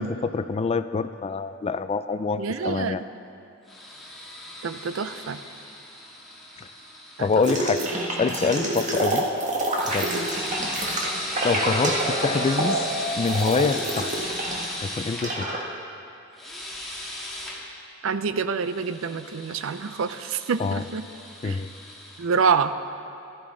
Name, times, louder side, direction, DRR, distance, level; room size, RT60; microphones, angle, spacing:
voice 1, 0.0-3.0 6.6-6.7 7.2-7.8 8.2-9.3 9.9-10.1 11.4-12.8 13.2-14.1 14.8-15.5 20.6-20.8 21.4-21.7, left 4 dB, 30° left, 12 dB, 0.3 m, -25 dB
voice 2, 2.4-3.1 4.6-5.4 7.2-7.3 8.6-8.7 10.0-10.3 18.0-21.0 21.4-21.6 22.2-22.9, right 5 dB, 75° right, 12 dB, 0.5 m, -27 dB
sound 1, 3.7-8.9 9.7-15.3 16.3-17.6 18.6-22.3, left 1 dB, ahead, 1.9 m, -36 dB
sound 2, 7.4-14.7 15.0-15.6, right 1 dB, 40° right, 1.4 m, -27 dB
14.0 x 12.5 x 3.8 m, 2.7 s
head